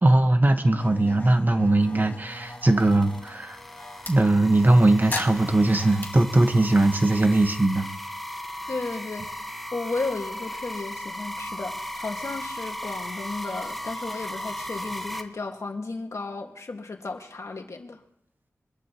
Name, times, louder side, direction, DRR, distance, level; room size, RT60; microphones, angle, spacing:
voice 1, 0.0-3.6 4.1-7.9, right 2 dB, 35° right, 6 dB, 1.4 m, -20 dB
sound 1, 0.8-4.2 5.1-6.1, left 2 dB, 35° left, 2.4 m, -38 dB
sound 2, 1.8-15.2, left 1 dB, ahead, 1.4 m, -37 dB
voice 2, 8.7-9.5 9.7-18.0, left 3 dB, 65° left, 3 dB, 1.8 m, -34 dB
24.0 x 12.0 x 3.0 m, 0.77 s
cardioid pair, 50°, 5 cm